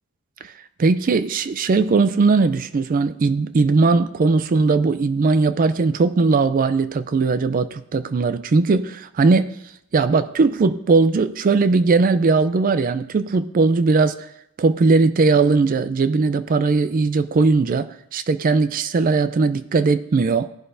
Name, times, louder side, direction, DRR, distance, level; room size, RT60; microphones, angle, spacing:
voice 1, 0.8-9.6 9.9-14.3 14.6-20.5, right 4 dB, 40° right, 13 dB, 0.4 m, -19 dB
18.0 x 11.0 x 2.6 m, 0.80 s
head